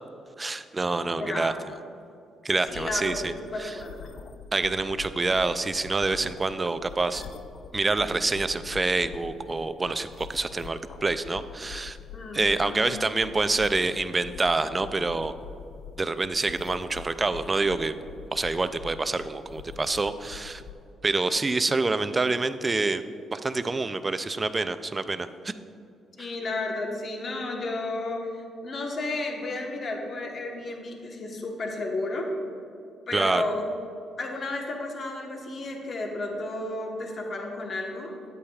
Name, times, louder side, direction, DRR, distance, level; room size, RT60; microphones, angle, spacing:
voice 1, 0.4-1.5 2.4-3.3 3.6-3.8 4.5-7.2 7.7-12.0 12.3-15.3 16.0-17.9 18.3-20.6 21.0-23.0 23.3-25.5 33.1-33.4, right 3 dB, 25° right, 12 dB, 0.4 m, -27 dB
voice 2, 1.2-1.6 2.7-4.3 12.1-12.9 26.2-32.3 33.1-33.7 34.2-38.1, left 2 dB, 50° left, 1 dB, 1.1 m, -33 dB
sound 1, 2.7-20.7, left 7 dB, 70° left, 0.4 m, -44 dB
9.4 x 8.4 x 2.4 m, 2.6 s
cardioid pair, 90°, 0 cm